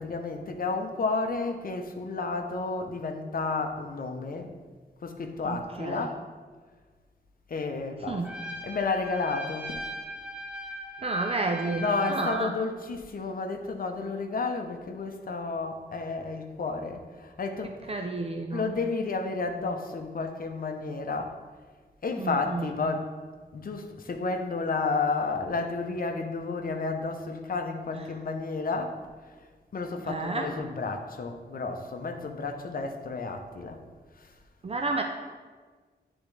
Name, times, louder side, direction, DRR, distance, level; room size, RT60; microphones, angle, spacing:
voice 1, 0.0-4.6 5.0-6.2 7.5-8.2 8.6-9.8 11.8-18.0 18.5-21.4 22.0-23.1 23.5-29.0 29.7-33.8 34.2-34.3, left 3 dB, 55° left, 4 dB, 0.7 m, -31 dB
voice 2, 5.4-6.1 8.1-8.3 11.0-12.5 17.9-18.7 22.2-22.7 30.1-30.5 34.6-35.0, right 3 dB, 35° right, 3 dB, 0.4 m, -31 dB
Trumpet, 8.2-12.5, equal, 5° right, 0.8 m, -39 dB
10.0 x 3.5 x 3.3 m, 1.5 s
wide cardioid pair, 125°, 18 cm